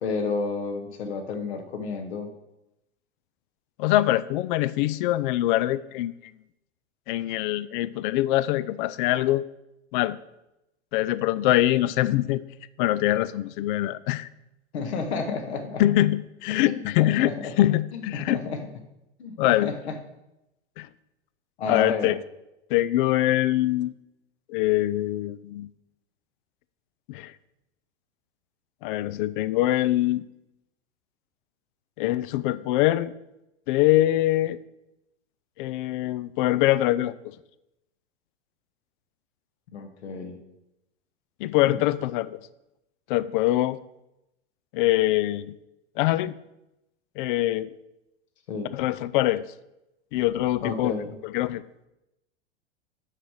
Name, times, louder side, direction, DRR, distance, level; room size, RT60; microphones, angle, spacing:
voice 1, 0.0-2.3 14.7-15.8 16.6-17.5 17.9-18.6 19.2-19.3 19.6-20.0 21.6-22.2 39.7-40.4 41.6-41.8 48.5-48.7 50.6-51.2, left 4 dB, 65° left, 5 dB, 1.6 m, -31 dB
voice 2, 3.8-6.1 7.1-9.4 9.9-10.2 10.9-12.4 12.8-14.3 15.8-17.3 17.6-18.4 19.4-19.7 20.8-20.9 21.7-22.2 22.7-23.9 24.5-25.7 27.1-27.3 28.8-30.2 32.0-33.1 33.7-34.6 35.6-37.3 41.4-42.4 43.1-43.8 44.7-45.5 46.0-46.3 47.2-47.7 48.7-49.5 50.1-50.9 51.2-51.6, left 15 dB, 45° left, 17 dB, 0.5 m, -23 dB
6.6 x 5.8 x 6.6 m, 0.91 s
figure-of-eight pair, 95°, 35 cm